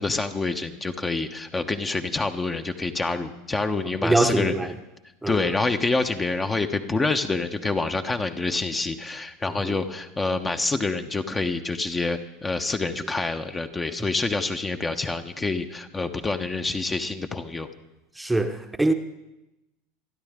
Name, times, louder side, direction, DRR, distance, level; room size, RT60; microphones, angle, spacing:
voice 1, 0.0-4.5 5.3-17.7, left 3 dB, 15° left, 1.1 m, -27 dB
voice 2, 4.0-4.7 5.2-5.4 9.6-9.8 14.0-14.1 18.2-18.9, right 2 dB, 5° right, 1.1 m, -23 dB
27.5 x 11.0 x 3.7 m
figure-of-eight pair, 80°, 0 cm